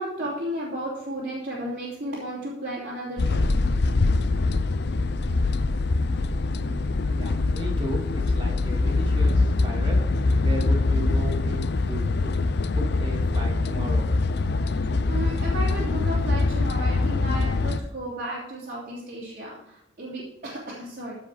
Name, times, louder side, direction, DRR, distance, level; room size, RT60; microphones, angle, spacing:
voice 1, 0.0-3.4 7.1-7.2 14.7-21.1, right 1 dB, 50° right, -6 dB, 3.2 m, -34 dB
sound 1, 3.2-17.8, left 3 dB, 60° left, 0.6 m, -23 dB
voice 2, 6.6-10.0 10.4-12.3 12.7-14.1, right 1 dB, 25° right, -1 dB, 2.6 m, -35 dB
15.0 x 5.2 x 4.9 m, 0.82 s
head